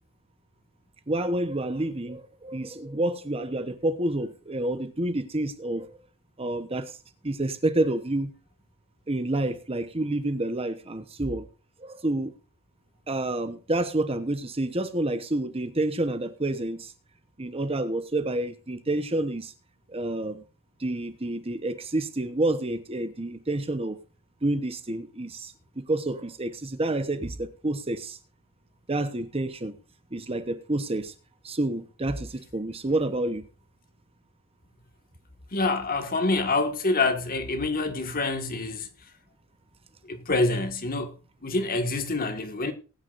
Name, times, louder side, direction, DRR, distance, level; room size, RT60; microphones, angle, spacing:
voice 1, 1.1-6.0 6.4-7.0 7.2-8.3 9.1-11.5 11.8-12.3 13.1-16.9 17.4-19.5 19.9-20.4 20.8-24.0 24.4-28.2 28.9-29.7 30.1-31.1 31.4-33.4, right 1 dB, 25° right, 1.0 m, -29 dB
voice 2, 35.5-38.9 40.1-41.1 41.4-42.7, left 3 dB, 40° left, 1.8 m, -26 dB
20.0 x 9.6 x 2.6 m
head